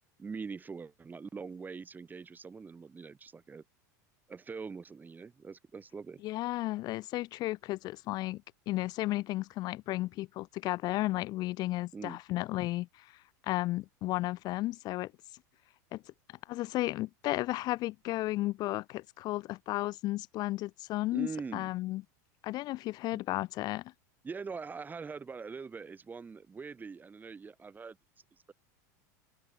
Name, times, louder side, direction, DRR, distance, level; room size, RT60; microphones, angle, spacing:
voice 1, 0.2-3.6 4.3-6.2 11.9-12.2 21.1-21.7 24.2-28.0, right 5 dB, 20° right, 6.3 m, -43 dB
voice 2, 6.2-13.1 13.4-15.1 15.9-16.0 16.5-22.0 22.4-23.9, left 17 dB, 45° left, 0.6 m, -34 dB
open air
hypercardioid pair, 105°, 10 cm